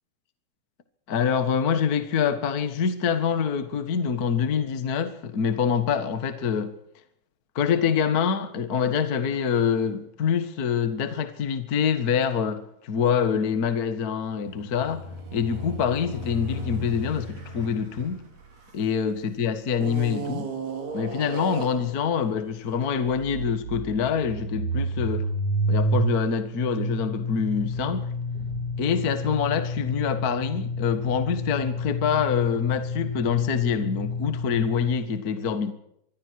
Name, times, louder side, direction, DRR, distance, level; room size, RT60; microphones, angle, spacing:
voice 1, 1.1-6.7 7.5-15.1 15.3-18.2 18.7-20.5 20.9-25.3 25.7-28.1 28.8-35.7, left 7 dB, 60° left, 0.9 m, -25 dB
sound 1, 14.3-19.1 19.8-21.9, right 2 dB, 70° right, 6.4 m, -35 dB
sound 2, 23.1-35.0, equal, 40° right, 4.6 m, -29 dB
25.5 x 23.0 x 4.8 m
omnidirectional pair, 4.6 m